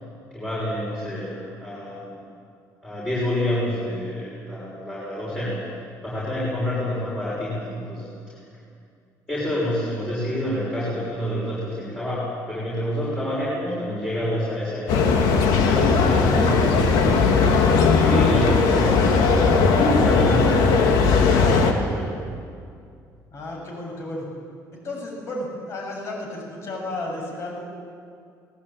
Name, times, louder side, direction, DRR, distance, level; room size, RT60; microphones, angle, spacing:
voice 1, 0.3-2.2 2.8-5.6 6.0-8.1 8.5-8.6 9.3-17.2 18.0-19.3 19.7-22.2, equal, 15° left, -8 dB, 6.3 m, -27 dB
sound 1, 14.9-21.7, left 4 dB, 80° left, 2.5 m, -18 dB
voice 2, 23.3-24.3 24.7-27.6, left 2 dB, 40° left, 0 dB, 7.2 m, -33 dB
22.5 x 19.0 x 8.7 m, 2.3 s
cardioid pair, 175°, 7 cm